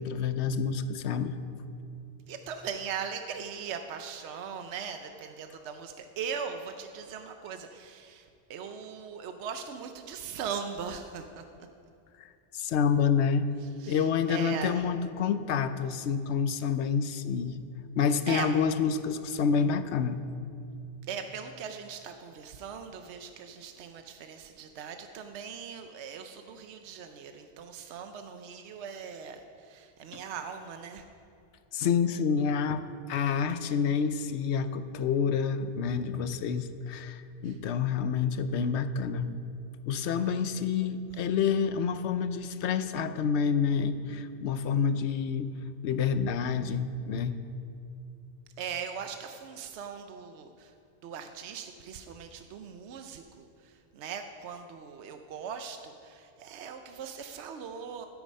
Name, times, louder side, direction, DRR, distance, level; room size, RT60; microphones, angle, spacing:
voice 1, 0.0-1.4 12.2-13.5 13.9-17.6 18.0-20.2 31.7-39.3 39.9-45.5 45.8-47.4, left 6 dB, 75° left, 12 dB, 0.9 m, -28 dB
voice 2, 2.3-11.4 13.8-14.8 18.0-18.5 21.1-31.0 37.4-37.6 40.2-40.3 48.6-50.7 51.0-58.1, right 7 dB, 75° right, 6 dB, 0.9 m, -40 dB
12.5 x 8.4 x 5.3 m, 2.5 s
omnidirectional pair, 1.2 m